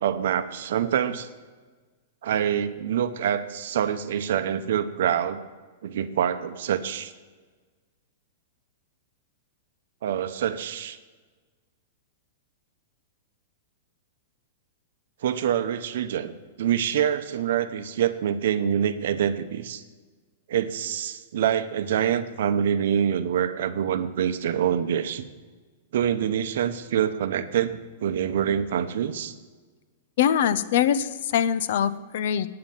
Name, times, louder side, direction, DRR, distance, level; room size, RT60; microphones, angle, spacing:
voice 1, 0.0-1.3 2.2-5.5 5.8-7.1 10.0-11.0 15.2-16.3 16.6-19.8 20.5-25.3 25.9-29.3, right 9 dB, 65° right, 11 dB, 0.8 m, -26 dB
voice 2, 30.2-32.5, left 9 dB, 55° left, 15 dB, 0.6 m, -23 dB
9.6 x 8.7 x 7.2 m, 1.4 s
supercardioid pair, 165°, 0 cm